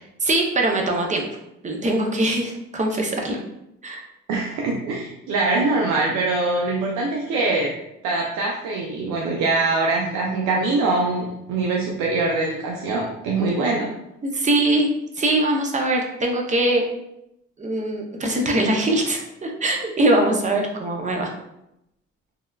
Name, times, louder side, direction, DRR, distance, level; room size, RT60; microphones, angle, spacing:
voice 1, 0.2-1.3 1.6-3.4 3.8-4.0 14.2-14.9 15.2-16.8 17.6-21.3, right 1 dB, 25° right, 1 dB, 0.5 m, -22 dB
voice 2, 4.3-7.7 8.0-13.9, right 3 dB, 90° right, -1 dB, 0.5 m, -23 dB
3.3 x 2.3 x 2.2 m, 0.85 s
cardioid pair, 90°, 30 cm